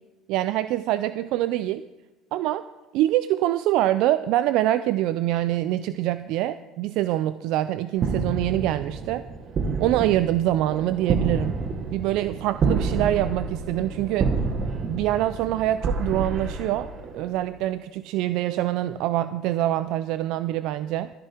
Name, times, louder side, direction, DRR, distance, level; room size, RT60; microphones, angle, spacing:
voice 1, 0.3-1.8 2.3-2.7 2.9-9.2 9.8-11.6 11.9-14.3 14.9-16.9 17.1-21.1, right 14 dB, 70° right, 14 dB, 0.3 m, -25 dB
sound 1, 8.0-17.5, right 4 dB, 50° right, 1.5 m, -28 dB
14.0 x 10.5 x 4.4 m, 1.1 s
supercardioid pair, 85°, 0 cm